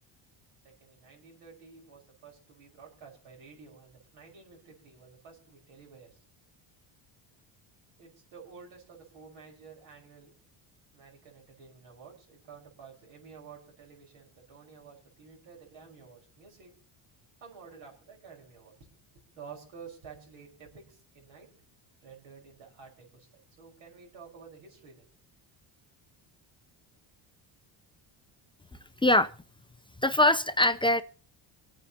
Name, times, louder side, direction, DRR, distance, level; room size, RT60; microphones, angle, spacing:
voice 1, 0.6-6.2 8.0-10.3 10.9-16.7 17.4-18.9 19.3-21.5 22.0-25.1, right 5 dB, 75° right, 0 dB, 5.6 m, -51 dB
voice 2, 30.0-31.0, left 1 dB, 10° left, 10 dB, 0.5 m, -22 dB
25.5 x 9.0 x 2.9 m, 0.38 s
cardioid pair, 105°, 49 cm